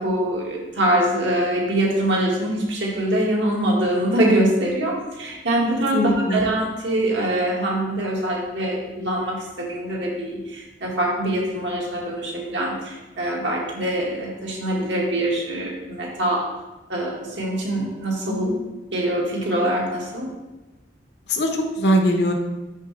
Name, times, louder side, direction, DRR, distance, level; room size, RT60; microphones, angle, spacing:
voice 1, 0.0-16.5 16.9-18.5 18.9-20.3, right 1 dB, 80° right, -2 dB, 1.7 m, -24 dB
voice 2, 5.9-6.5 18.2-18.6 21.3-22.3, equal, 70° left, 3 dB, 0.9 m, -21 dB
6.4 x 5.8 x 3.2 m, 1.1 s
head